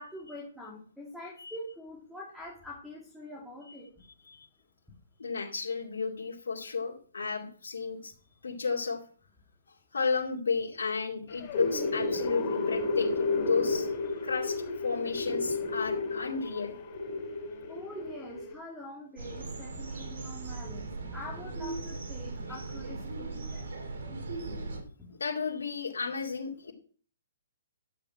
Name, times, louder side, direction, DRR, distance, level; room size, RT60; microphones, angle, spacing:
voice 1, 0.0-3.9 17.7-23.7 25.0-25.2, left 1 dB, ahead, -3 dB, 2.8 m, -45 dB
voice 2, 5.2-8.1 8.4-9.0 9.9-13.9 14.2-16.7 25.2-26.7, left 5 dB, 80° left, -3 dB, 2.3 m, -33 dB
sound 1, 11.3-18.5, left 3 dB, 40° left, 5.5 m, -32 dB
sound 2, 19.2-24.8, right 3 dB, 65° right, 3.0 m, -38 dB
12.0 x 8.2 x 4.7 m, 0.42 s
hypercardioid pair, 140°, 0 cm